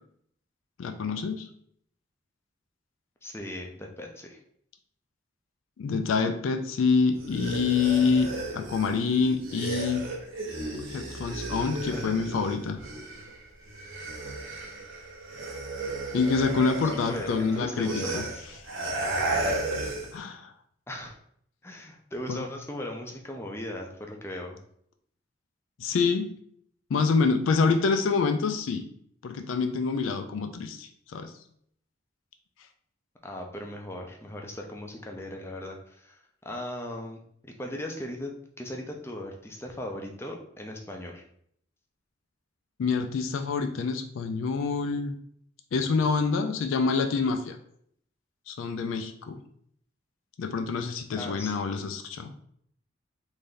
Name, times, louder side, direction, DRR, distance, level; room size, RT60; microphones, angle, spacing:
voice 1, 0.8-1.5 5.8-8.3 8.5-10.0 10.9-12.8 16.1-18.2 20.1-20.5 22.3-22.4 25.8-26.3 26.9-28.8 29.2-31.3 42.8-45.2 45.7-47.6 48.5-49.4 50.4-52.3, left 4 dB, 85° left, 6 dB, 0.4 m, -26 dB
voice 2, 3.2-4.4 11.6-11.7 11.9-12.2 16.8-18.4 20.9-21.1 21.6-24.6 33.2-38.3 38.6-41.2 51.1-51.5, left 1 dB, 15° left, 2 dB, 0.4 m, -38 dB
sound 1, 7.2-13.4 13.7-20.2, right 2 dB, 85° right, 1.0 m, -34 dB
3.3 x 2.6 x 3.7 m, 0.67 s
head